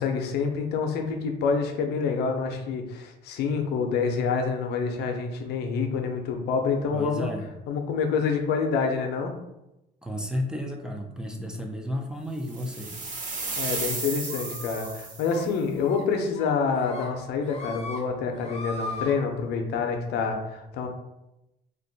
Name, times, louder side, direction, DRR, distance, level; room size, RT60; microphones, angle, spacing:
voice 1, 0.0-7.3 7.7-9.3 13.6-20.9, left 5 dB, 75° left, 4 dB, 0.5 m, -27 dB
voice 2, 6.9-7.5 10.0-12.9, equal, 5° right, 1 dB, 0.4 m, -32 dB
sound 1, 12.5-15.5, right 3 dB, 50° right, 1.1 m, -34 dB
sound 2, 14.3-14.9 15.2-15.4 15.8-16.0 16.3-17.1 17.4-18.0 18.3-19.1, left 3 dB, 35° left, 0.7 m, -38 dB
2.5 x 2.2 x 3.9 m, 0.91 s
cardioid pair, 110°, 17 cm